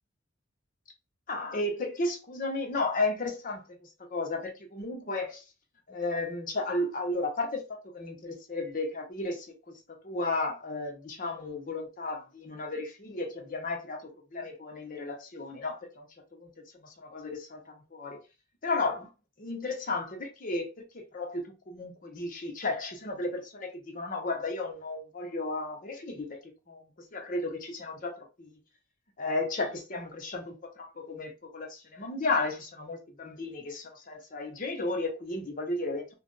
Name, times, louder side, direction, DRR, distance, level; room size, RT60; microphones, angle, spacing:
voice 1, 1.3-5.4 5.9-7.6 7.9-16.1 16.3-16.5 16.8-18.2 18.6-19.1 19.4-20.7 20.9-26.3 26.7-26.8 27.1-28.6 29.2-36.1, left 2 dB, 45° left, 0.8 m, -34 dB
2.5 x 2.2 x 3.8 m
head